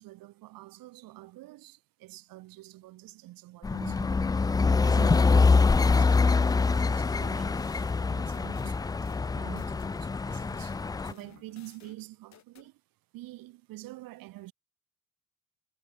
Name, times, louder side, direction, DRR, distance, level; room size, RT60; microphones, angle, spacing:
voice 1, 0.0-4.4 4.8-7.7 8.0-12.8 13.1-14.5, right 17 dB, 90° right, 5.9 m, -47 dB
sound 1, 3.6-11.1, left 4 dB, 10° left, 0.3 m, -25 dB
sound 2, 7.1-9.9 10.3-12.7, left 10 dB, 55° left, 6.0 m, -56 dB
cardioid pair, 125°, 33 cm